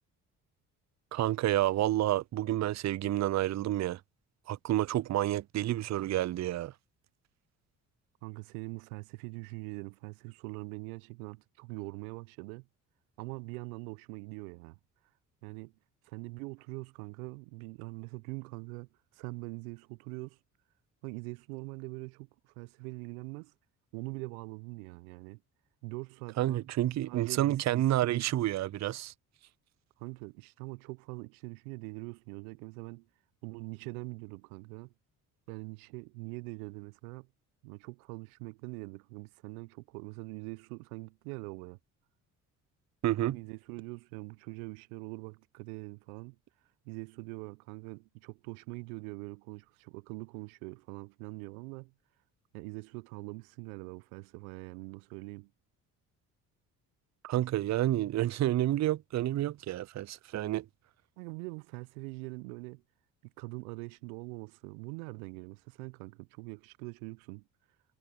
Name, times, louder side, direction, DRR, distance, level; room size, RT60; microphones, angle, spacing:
voice 1, 1.1-4.0 4.5-6.7 26.4-29.1 43.0-43.4 57.2-60.7, right 14 dB, 40° right, 0.5 m, -29 dB
voice 2, 8.2-12.7 13.2-14.8 15.4-15.7 16.0-20.4 21.0-23.5 23.9-25.4 25.8-26.7 27.1-28.3 30.0-33.1 33.4-34.9 35.5-37.3 37.6-41.8 43.2-46.4 46.8-51.9 52.5-55.5 61.2-62.8 63.4-67.4, right 28 dB, 75° right, 1.0 m, -43 dB
hypercardioid pair, 50°, 43 cm